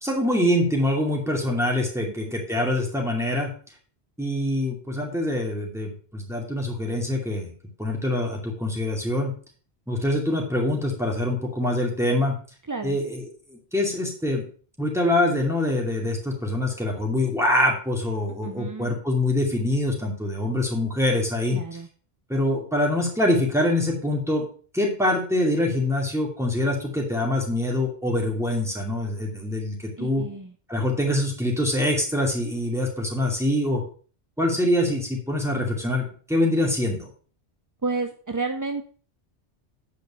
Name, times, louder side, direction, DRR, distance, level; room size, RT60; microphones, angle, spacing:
voice 1, 0.0-3.5 4.2-7.5 7.8-9.3 9.9-12.3 12.8-14.5 14.8-21.6 22.3-24.4 24.7-30.2 30.7-33.8 34.4-37.1, left 1 dB, ahead, -1 dB, 2.5 m, -24 dB
voice 2, 12.7-13.0 18.4-18.9 21.5-21.9 30.0-30.5 37.8-38.8, right 3 dB, 25° right, 6 dB, 0.4 m, -30 dB
8.7 x 5.2 x 5.6 m, 0.42 s
omnidirectional pair, 1.1 m